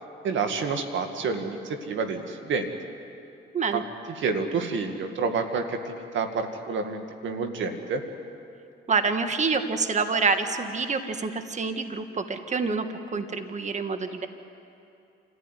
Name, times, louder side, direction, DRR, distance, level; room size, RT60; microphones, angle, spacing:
voice 1, 0.2-2.7 3.7-3.8 4.2-8.0, right 4 dB, 70° right, 6 dB, 2.0 m, -29 dB
voice 2, 8.9-12.9 13.1-14.3, right 4 dB, 35° right, 8 dB, 1.7 m, -27 dB
27.5 x 14.5 x 9.9 m, 2.6 s
cardioid pair, 90°, 20 cm